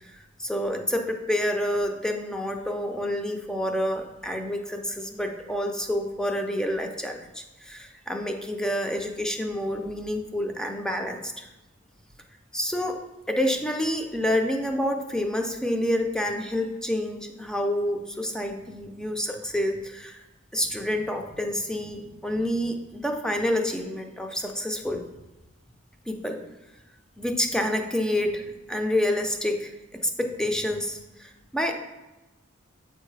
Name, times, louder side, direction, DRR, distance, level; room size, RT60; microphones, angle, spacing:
voice 1, 0.0-11.5 12.5-13.0 13.3-20.2 20.5-25.0 26.1-26.4 27.2-31.7, left 1 dB, 5° left, 4 dB, 0.5 m, -28 dB
7.9 x 4.5 x 3.3 m, 1.1 s
head